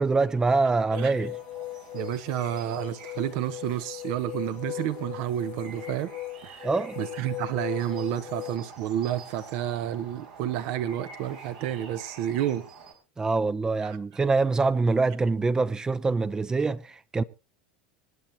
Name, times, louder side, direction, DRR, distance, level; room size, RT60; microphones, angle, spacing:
voice 1, 0.0-1.4 6.6-7.0 13.2-17.2, right 3 dB, 20° right, 0.7 m, -25 dB
sound 1, 0.9-8.6, left 17 dB, 55° left, 0.6 m, -39 dB
sound 2, 1.1-12.9, right 4 dB, 80° right, 4.6 m, -48 dB
voice 2, 1.9-6.1 6.4-12.7 13.8-14.0, right 11 dB, 65° right, 1.2 m, -30 dB
25.0 x 9.2 x 2.8 m
hypercardioid pair, 90°, 4 cm